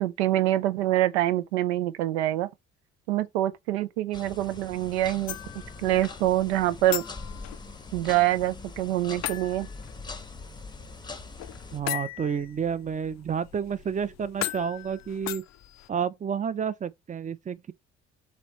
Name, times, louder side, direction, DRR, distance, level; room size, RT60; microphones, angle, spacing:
voice 1, 0.0-2.5 3.1-5.4 5.8-7.0 7.9-9.7, right 14 dB, 85° right, 0.5 m, -25 dB
sound 1, 4.1-11.8, left 3 dB, 15° left, 0.7 m, -42 dB
sound 2, 5.3-15.9, left 15 dB, 55° left, 0.4 m, -39 dB
voice 2, 11.7-15.4 15.9-17.7, right 7 dB, 25° right, 0.5 m, -30 dB
3.2 x 3.0 x 4.1 m
hypercardioid pair, 50°, 32 cm